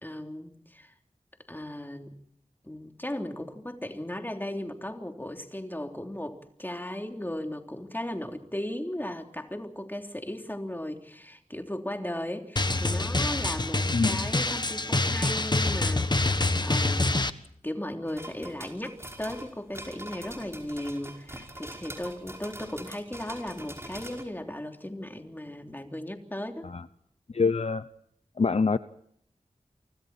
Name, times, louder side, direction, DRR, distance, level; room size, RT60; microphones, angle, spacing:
voice 1, 0.0-0.9 1.5-2.1 2.6-16.1 16.4-17.1 17.6-26.7, left 1 dB, 15° left, 4 dB, 3.3 m, -36 dB
Drum, 12.6-17.3, left 2 dB, 35° left, 1.4 m, -26 dB
voice 2, 13.9-14.3 26.6-26.8 27.3-27.8 28.4-28.8, left 4 dB, 50° left, 12 dB, 0.8 m, -25 dB
sound 1, 18.1-24.2, right 1 dB, 20° right, 5.3 m, -43 dB
30.0 x 25.0 x 4.4 m, 0.70 s
wide cardioid pair, 60°, 13 cm